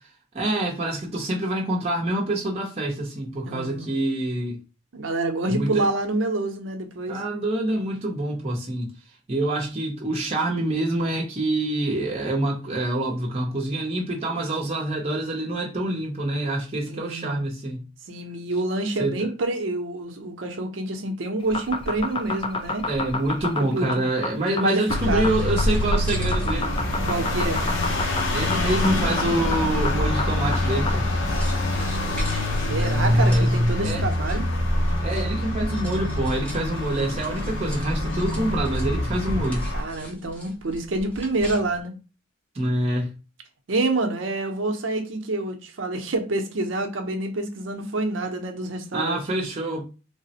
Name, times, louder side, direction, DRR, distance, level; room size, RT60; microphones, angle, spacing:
voice 1, 0.3-4.6 5.5-5.8 7.1-8.9 9.3-17.8 19.0-19.2 22.9-26.7 28.3-31.1 33.0-34.1 35.0-39.7 42.5-43.1 48.9-49.8, right 1 dB, 35° right, 0.6 m, -26 dB
voice 2, 3.4-3.9 4.9-7.2 16.8-17.4 18.1-22.9 23.7-24.0 24.4-25.4 27.0-27.6 31.7-34.5 39.7-41.9 43.7-49.2, right 2 dB, 85° right, 0.6 m, -27 dB
sound 1, 21.4-31.1, left 3 dB, 30° left, 0.3 m, -29 dB
sound 2, 24.9-39.8, left 1 dB, 80° left, 0.6 m, -25 dB
sound 3, 25.4-41.8, equal, 5° left, 0.7 m, -40 dB
3.3 x 2.0 x 2.7 m
head